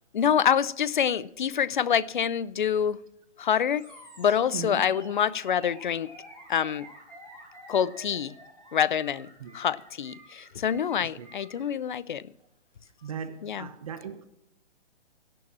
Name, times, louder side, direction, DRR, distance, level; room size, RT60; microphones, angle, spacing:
voice 1, 0.1-3.0 3.4-3.8 4.2-6.1 6.5-6.9 7.7-8.3 8.7-9.3 9.5-12.2 13.4-13.7, left 8 dB, 45° left, 0.5 m, -26 dB
Animal, 3.7-11.7, equal, 5° left, 4.3 m, -50 dB
voice 2, 4.5-4.8 9.4-9.5 11.0-11.3 13.0-14.3, right 7 dB, 30° right, 0.9 m, -38 dB
17.5 x 7.0 x 7.4 m
hypercardioid pair, 160°, 35 cm